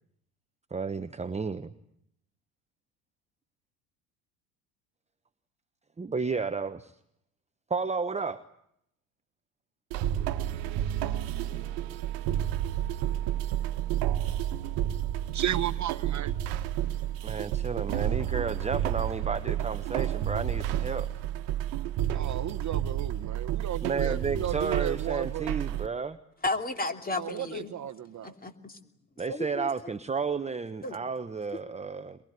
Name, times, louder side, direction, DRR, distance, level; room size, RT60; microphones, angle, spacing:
voice 1, 0.7-1.7 6.0-6.9 7.7-8.4 17.2-21.1 23.8-26.2 29.2-32.2, right 5 dB, 15° right, 1.1 m, -32 dB
sound 1, 9.9-25.9, right 11 dB, 65° right, 1.5 m, -30 dB
voice 2, 15.3-16.3 22.1-25.5 27.1-28.3, right 11 dB, 40° right, 1.2 m, -34 dB
voice 3, 26.4-27.7 28.2-28.8 29.3-29.7 30.8-31.0, left 3 dB, 20° left, 2.9 m, -33 dB
23.0 x 22.5 x 9.5 m
hypercardioid pair, 70°, 45 cm